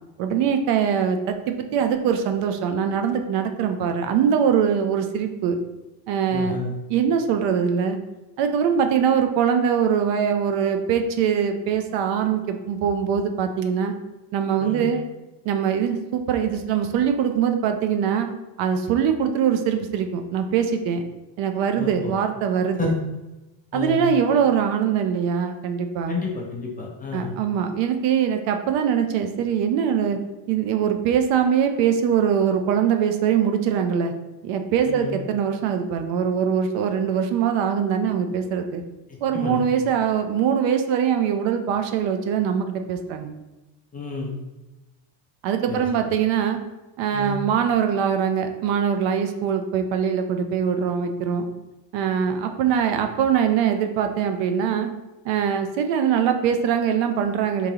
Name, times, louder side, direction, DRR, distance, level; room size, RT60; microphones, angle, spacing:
voice 1, 0.2-5.6 6.1-6.6 6.9-8.0 8.4-13.9 14.3-15.1 15.4-18.3 18.6-21.0 21.4-22.9 23.7-26.2 27.1-30.2 30.5-34.1 34.4-38.8 39.2-43.3 45.4-46.6 47.0-51.5 51.9-54.9 55.2-57.7, right 7 dB, 65° right, 6 dB, 0.6 m, -22 dB
voice 2, 6.3-6.7 14.6-14.8 21.8-22.1 22.8-22.9 23.7-24.0 26.1-27.3 34.9-35.1 39.3-39.6 43.9-44.3 45.7-45.9 47.1-47.4, left 4 dB, 20° left, -1 dB, 0.5 m, -30 dB
3.8 x 2.9 x 2.8 m, 1.0 s
cardioid pair, 125°, 48 cm